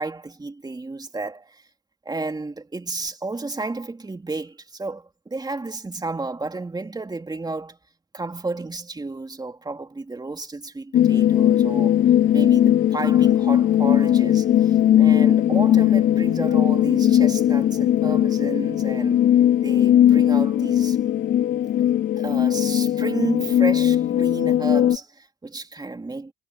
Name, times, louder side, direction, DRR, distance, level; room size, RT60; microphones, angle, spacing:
voice 1, 0.0-1.7 2.0-7.8 8.1-12.0 12.3-19.3 19.6-21.0 22.1-26.3, right 3 dB, 20° right, 3.2 m, -31 dB
sound 1, 10.9-25.0, left 11 dB, 75° left, 2.6 m, -18 dB
cardioid pair, 90°, 20 cm